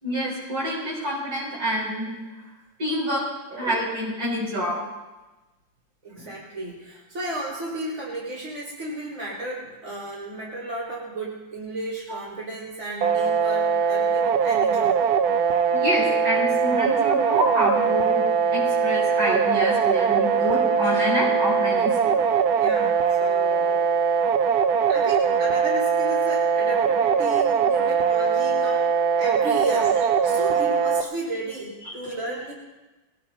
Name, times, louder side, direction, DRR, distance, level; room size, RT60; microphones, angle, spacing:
voice 1, 0.0-2.1 2.8-4.8 6.2-6.3 12.1-12.2 15.7-18.2 18.5-22.2 31.9-32.0, equal, 85° right, -4 dB, 6.9 m, -27 dB
voice 2, 6.0-15.1 22.6-23.9 24.9-28.9 29.2-32.5, right 2 dB, 40° right, -6 dB, 4.3 m, -33 dB
sound 1, 13.0-31.0, right 6 dB, 65° right, 1.0 m, -21 dB
23.0 x 18.5 x 2.8 m, 1.1 s
omnidirectional pair, 2.2 m